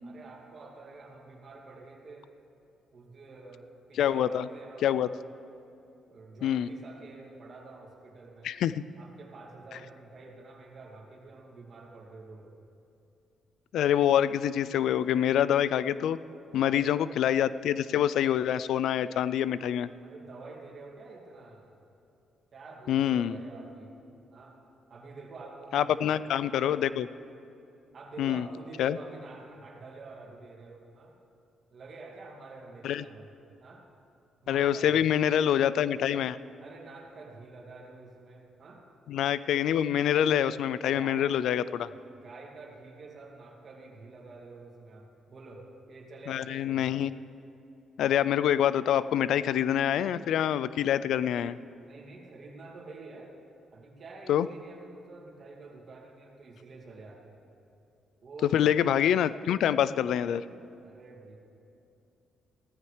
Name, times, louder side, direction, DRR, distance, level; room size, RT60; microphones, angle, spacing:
voice 1, 0.0-2.3 2.9-5.3 6.1-8.5 9.0-12.5 16.5-17.0 20.0-21.7 22.5-24.0 24.3-24.6 24.9-26.2 26.4-27.0 27.9-31.2 31.7-33.3 33.6-33.9 34.4-35.3 36.6-38.8 40.8-41.3 41.8-41.9 42.2-47.0 51.8-53.3 53.7-57.5 58.2-58.7 60.8-61.4, right 3 dB, 50° right, -1 dB, 2.3 m, -48 dB
voice 2, 3.9-4.5 4.8-5.1 6.4-6.7 8.4-8.8 13.7-16.2 16.5-19.9 22.9-23.4 25.7-27.1 28.2-28.5 28.8-29.0 32.8-33.0 34.5-36.4 39.1-41.9 46.3-47.1 48.0-51.6 54.3-54.5 58.5-60.4, left 10 dB, 75° left, 16 dB, 0.3 m, -26 dB
16.5 x 14.0 x 3.3 m, 2.8 s
cardioid pair, 90°, 0 cm